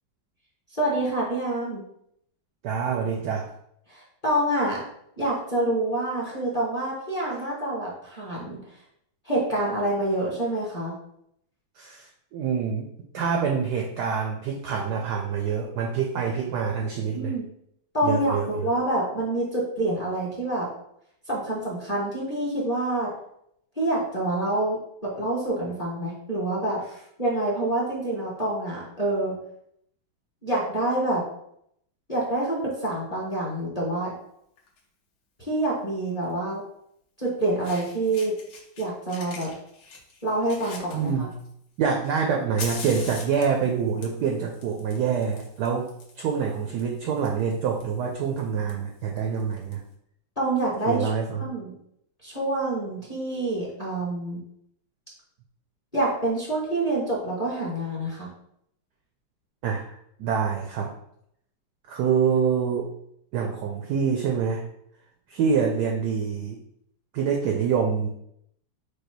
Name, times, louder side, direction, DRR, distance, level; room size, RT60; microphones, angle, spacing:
voice 1, 0.7-1.8 3.9-4.8 5.2-8.6 9.2-10.9 16.8-17.4 17.9-20.7 21.3-23.1 23.8-26.8 27.2-29.4 30.4-31.2 32.1-34.1 35.4-36.6 37.2-38.3 38.8-39.5 40.2-41.3 50.4-51.1 51.4-51.7 52.2-54.4 55.9-58.3, right 1 dB, 25° left, -6 dB, 0.9 m, -27 dB
voice 2, 2.6-3.5 11.8-12.9 13.1-17.3 18.0-18.7 40.9-41.3 41.8-49.8 50.9-51.4 59.6-60.9 61.9-62.9 63.3-64.6 65.3-66.6 67.1-68.1, right 6 dB, 75° right, 1 dB, 0.9 m, -26 dB
Fire, 34.6-34.8 36.2-36.3 37.2-37.3 37.6-38.8 39.1-41.5 42.0-49.7, left 4 dB, 80° left, 1.8 m, -43 dB
4.9 x 2.2 x 4.5 m, 0.73 s
omnidirectional pair, 2.2 m